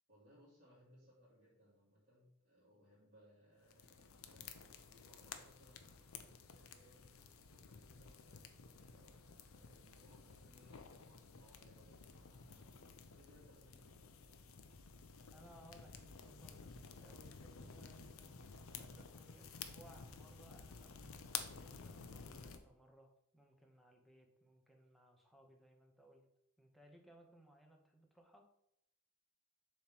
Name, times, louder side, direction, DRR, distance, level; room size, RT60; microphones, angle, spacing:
voice 1, 0.1-14.4, equal, 40° right, -11 dB, 2.7 m, -67 dB
sound 1, 3.7-22.6, left 6 dB, 80° left, 0.6 m, -53 dB
voice 2, 15.3-26.3 26.6-28.5, right 1 dB, ahead, 1 dB, 0.9 m, -64 dB
7.1 x 3.2 x 5.9 m, 0.79 s
head